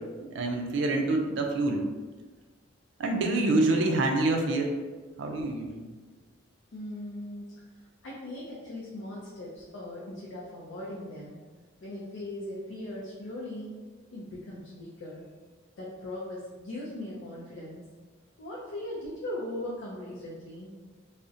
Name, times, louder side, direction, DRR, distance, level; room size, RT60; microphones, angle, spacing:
voice 1, 0.3-1.8 3.0-4.7 5.2-5.9, right 2 dB, 60° right, 2 dB, 0.3 m, -26 dB
voice 2, 6.7-7.5 8.0-11.4 11.8-13.8 14.1-15.3 15.8-17.9 18.4-20.7, left 1 dB, 65° left, -5 dB, 0.4 m, -39 dB
2.6 x 2.0 x 2.4 m, 1.3 s
head